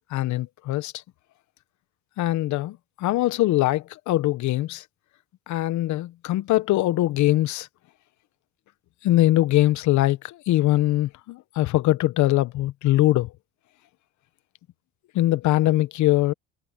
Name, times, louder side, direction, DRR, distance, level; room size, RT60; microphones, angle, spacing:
voice 1, 0.1-1.0 2.2-4.8 5.5-7.7 9.0-13.3 15.1-16.3, left 15 dB, 60° left, 1.3 m, -22 dB
supercardioid pair, 90°, 33 cm